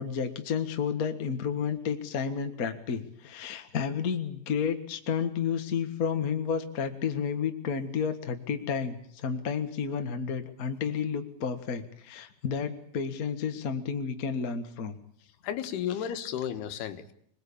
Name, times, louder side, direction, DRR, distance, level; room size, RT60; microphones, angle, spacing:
voice 1, 0.0-15.0 16.0-16.3, left 6 dB, 60° left, 7 dB, 0.9 m, -31 dB
voice 2, 15.4-17.1, left 9 dB, 85° left, 9 dB, 3.4 m, -33 dB
25.5 x 20.0 x 8.7 m, 0.67 s
omnidirectional pair, 4.5 m